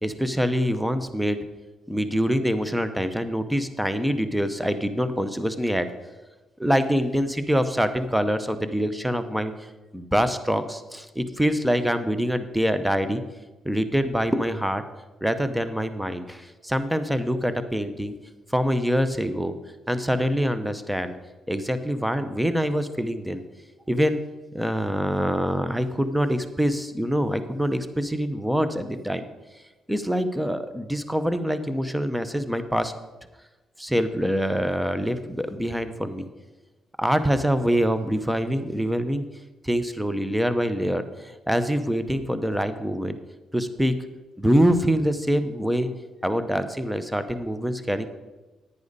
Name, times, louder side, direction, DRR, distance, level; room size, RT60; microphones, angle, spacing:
voice 1, 0.0-1.4 1.9-5.9 6.6-9.5 9.9-13.2 13.6-14.8 15.2-18.1 18.5-19.6 19.9-21.1 21.5-23.4 23.9-24.2 24.5-29.2 29.9-32.9 33.8-36.2 37.0-39.2 39.6-43.2 43.5-44.0 44.4-45.9 46.2-48.1, equal, 5° right, 11 dB, 0.8 m, -25 dB
10.5 x 9.7 x 4.1 m, 1.1 s
cardioid pair, 90°, 0 cm